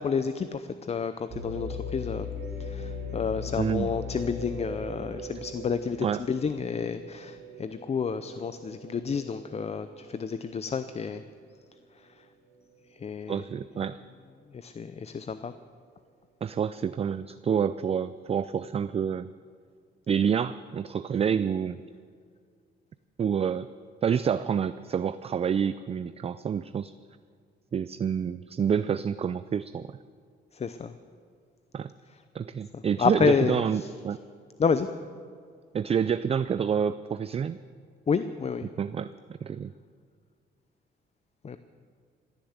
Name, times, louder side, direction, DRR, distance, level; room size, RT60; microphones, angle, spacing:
voice 1, 0.0-2.3 2.6-11.2 13.0-13.4 14.5-15.5 30.5-30.9 33.0-33.6 34.6-34.9 38.1-38.7 41.4-41.6, left 6 dB, 30° left, 11 dB, 0.6 m, -29 dB
sound 1, 1.3-11.2 11.7-11.8 12.5-12.9, left 3 dB, 85° right, 4.1 m, -39 dB
voice 2, 3.6-3.9 6.0-6.2 13.3-14.0 16.4-19.3 20.1-21.8 23.2-23.7 24.0-26.9 27.7-30.0 31.7-31.9 32.3-34.2 35.7-37.6 38.6-39.1 39.4-39.7, right 7 dB, 30° right, 14 dB, 0.4 m, -28 dB
16.0 x 10.5 x 8.1 m, 2.1 s
cardioid pair, 90°, 20 cm